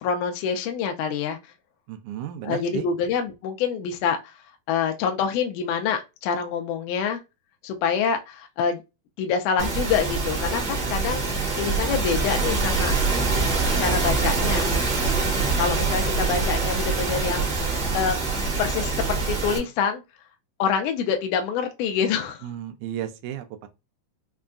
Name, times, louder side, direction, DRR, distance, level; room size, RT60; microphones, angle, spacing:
voice 1, 0.0-1.4 2.4-4.4 4.7-7.2 7.6-8.8 9.2-11.2 11.6-12.9 13.8-14.7 15.6-18.2 18.6-20.0 20.6-22.4, left 7 dB, 80° left, 2.0 m, -26 dB
voice 2, 1.9-2.8 22.4-23.7, right 11 dB, 80° right, 1.9 m, -33 dB
sound 1, 9.6-19.6, right 4 dB, 55° right, 1.0 m, -24 dB
5.2 x 2.3 x 2.4 m
omnidirectional pair, 3.6 m